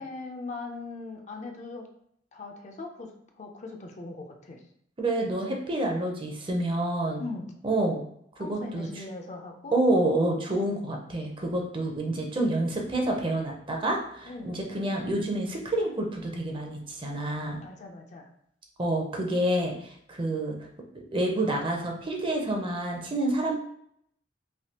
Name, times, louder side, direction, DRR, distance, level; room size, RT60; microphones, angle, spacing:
voice 1, 0.0-1.9 2.3-4.6 7.2-7.5 8.4-9.7 14.2-14.6 17.6-18.3, left 3 dB, 40° left, 3 dB, 0.5 m, -40 dB
voice 2, 5.0-7.2 7.6-8.0 8.4-8.9 9.7-17.6 18.8-20.5 21.1-23.6, right 1 dB, 30° right, 1 dB, 0.6 m, -28 dB
3.3 x 2.7 x 2.8 m, 0.70 s
head